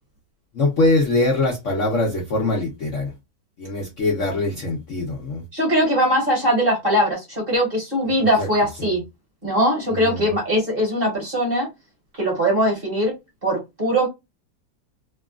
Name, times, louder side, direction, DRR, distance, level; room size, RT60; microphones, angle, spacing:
voice 1, 0.5-3.1 3.6-5.4 8.4-8.5 8.8-8.9 10.0-10.3, left 2 dB, 55° left, 0.9 m, -22 dB
voice 2, 5.5-9.0 9.4-11.7 12.2-13.1 13.4-14.1, equal, 35° right, 1.2 m, -21 dB
3.0 x 2.3 x 2.4 m
omnidirectional pair, 2.0 m